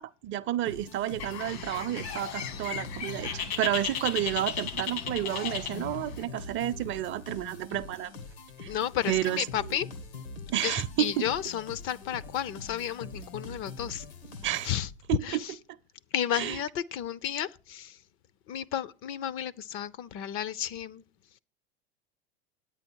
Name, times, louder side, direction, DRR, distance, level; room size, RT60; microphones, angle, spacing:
voice 1, 0.0-8.1 8.6-8.7 9.1-9.8 10.5-11.3 14.4-14.7 15.1-15.4 16.3-16.6, right 13 dB, 35° right, 0.6 m, -31 dB
sound 1, 0.6-15.2, left 4 dB, 85° left, 1.9 m, -44 dB
Bird, 1.2-6.2, left 8 dB, 70° left, 1.6 m, -36 dB
voice 2, 8.7-9.8 10.6-14.0 14.6-14.9 15.2-15.5 16.1-18.0 18.5-21.0, left 10 dB, 40° left, 0.6 m, -32 dB
9.8 x 8.7 x 4.6 m
hypercardioid pair, 100°, 33 cm